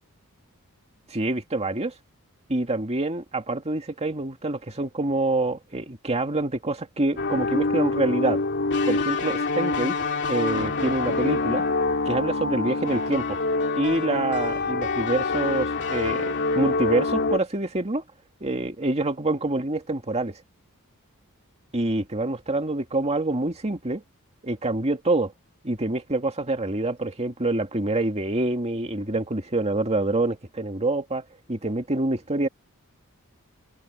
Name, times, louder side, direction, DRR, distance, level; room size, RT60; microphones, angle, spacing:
voice 1, 1.1-1.9 2.5-8.4 8.9-10.0 10.3-11.6 12.0-13.4 13.8-18.0 18.4-20.4 21.7-24.0 24.4-25.3 25.6-32.5, right 2 dB, 30° right, 2.3 m, -26 dB
sound 1, 7.2-17.4, left 3 dB, 55° left, 2.6 m, -25 dB
head